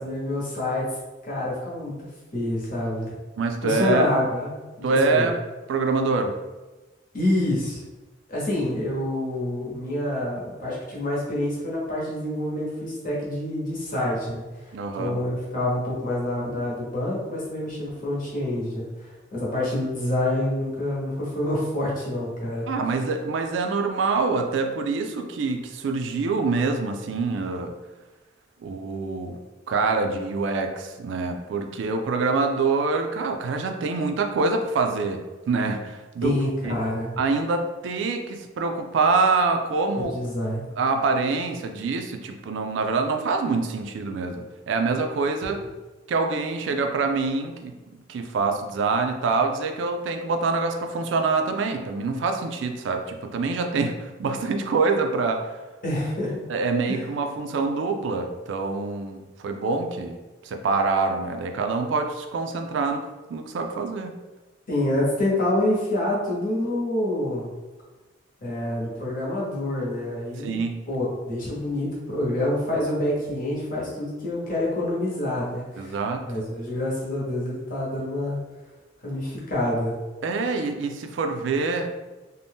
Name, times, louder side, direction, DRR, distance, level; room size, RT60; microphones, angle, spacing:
voice 1, 0.0-3.1 3.6-4.5 4.8-5.3 7.1-7.8 8.3-22.7 36.2-37.1 39.9-40.7 55.8-56.4 56.9-57.1 64.7-67.5 68.4-70.5 70.9-75.9 76.2-78.4 79.0-80.0, left 1 dB, 45° left, -5 dB, 1.0 m, -27 dB
voice 2, 3.4-4.1 4.8-5.4 5.7-6.3 14.7-15.2 22.7-27.7 28.6-29.4 29.7-36.4 36.6-36.8 37.2-40.1 40.8-45.6 46.1-55.6 56.5-60.2 60.4-64.1 70.4-70.7 75.8-76.2 80.2-81.9, right 4 dB, 70° right, 5 dB, 0.3 m, -25 dB
2.6 x 2.1 x 3.4 m, 1.2 s
head